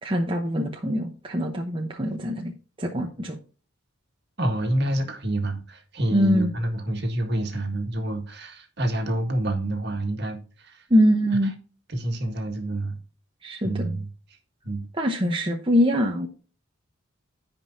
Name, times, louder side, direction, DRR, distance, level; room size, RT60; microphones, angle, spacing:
voice 1, 0.0-2.5 2.8-3.4 6.1-6.5 10.9-11.5 13.4-14.0 15.0-16.3, equal, 25° right, 0.9 m, -23 dB
voice 2, 4.4-10.8 11.9-13.0 13.6-14.1 14.6-14.9, right 1 dB, 55° right, 1.9 m, -28 dB
15.5 x 5.3 x 2.7 m
head